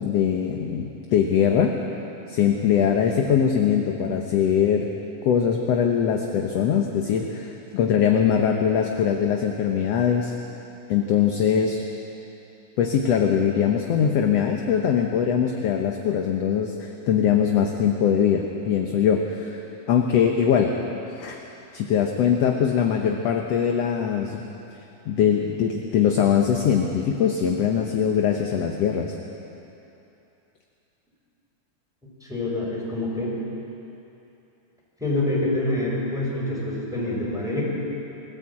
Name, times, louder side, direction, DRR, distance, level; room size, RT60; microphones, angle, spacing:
voice 1, 0.0-1.8 2.3-4.9 5.2-10.3 10.9-11.8 12.8-19.6 19.9-20.7 21.2-21.4 21.7-24.4 25.1-29.2, left 8 dB, 65° left, 2 dB, 1.8 m, -22 dB
voice 2, 32.2-33.3 35.0-37.6, left 1 dB, ahead, -5 dB, 5.4 m, -26 dB
21.5 x 14.5 x 8.5 m, 3.0 s
omnidirectional pair, 3.7 m